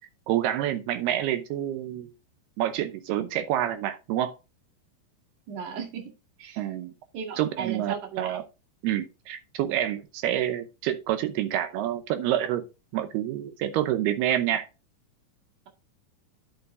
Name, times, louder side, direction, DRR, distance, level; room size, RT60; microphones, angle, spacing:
voice 1, 0.3-2.1 2.6-4.4 6.6-6.9 7.4-8.4 8.8-12.7 12.9-14.7, right 12 dB, 75° right, 2.6 m, -28 dB
voice 2, 5.5-6.1 6.4-6.6 7.1-8.4, right 7 dB, 55° right, 3.0 m, -36 dB
11.0 x 6.8 x 2.6 m
omnidirectional pair, 5.0 m